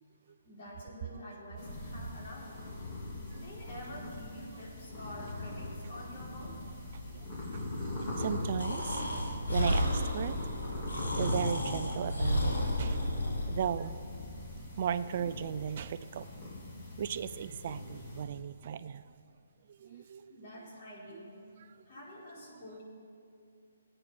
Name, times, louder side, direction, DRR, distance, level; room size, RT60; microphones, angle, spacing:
voice 1, 0.4-2.6 3.2-6.6 19.9-21.4 21.9-22.8, left 1 dB, 50° left, -4 dB, 4.1 m, -48 dB
sound 1, 1.6-18.2, left 1 dB, 30° left, 3.8 m, -41 dB
voice 2, 7.5-10.4 10.9-14.3 14.6-16.3 16.9-19.1 19.7-20.4 21.1-21.3 21.6-21.7 22.5-22.6, right 8 dB, 45° right, 13 dB, 0.4 m, -37 dB
Breathing, 8.6-13.7, left 1 dB, 85° left, 3.5 m, -32 dB
17.0 x 8.8 x 6.1 m, 2.7 s
hypercardioid pair, 155°, 0 cm